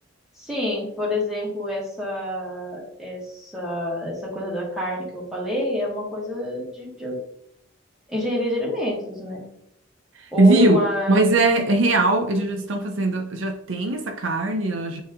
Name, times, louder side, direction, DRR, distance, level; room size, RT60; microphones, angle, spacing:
voice 1, 0.4-7.2 8.1-9.4 10.3-11.3, left 1 dB, ahead, 2.0 m, -28 dB
voice 2, 10.4-15.0, right 2 dB, 75° right, 0.8 m, -20 dB
9.2 x 3.3 x 3.6 m
head